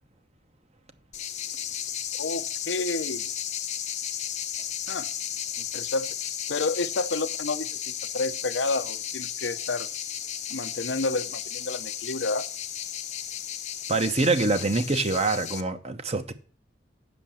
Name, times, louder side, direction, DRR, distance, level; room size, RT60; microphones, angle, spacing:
sound 1, 1.1-15.6, left 9 dB, 40° left, 0.8 m, -34 dB
voice 1, 2.2-3.3 4.9-5.1 5.7-6.1 6.5-7.8 8.1-9.9 10.5-12.4, left 3 dB, 65° left, 0.9 m, -30 dB
voice 2, 13.9-16.3, right 3 dB, 35° right, 1.0 m, -25 dB
8.2 x 6.6 x 7.2 m
head